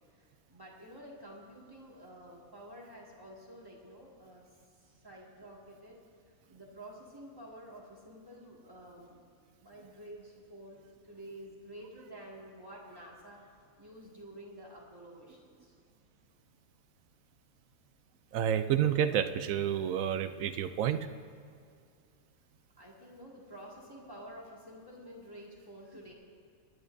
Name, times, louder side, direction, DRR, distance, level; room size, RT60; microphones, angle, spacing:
voice 1, 0.2-4.5 4.8-6.0 6.3-9.2 9.6-13.5 13.8-15.7 22.8-26.1, right 1 dB, 15° right, -4 dB, 2.1 m, -50 dB
voice 2, 18.3-21.1, right 9 dB, 70° right, 10 dB, 1.0 m, -29 dB
24.5 x 11.0 x 2.7 m, 2.3 s
omnidirectional pair, 1.5 m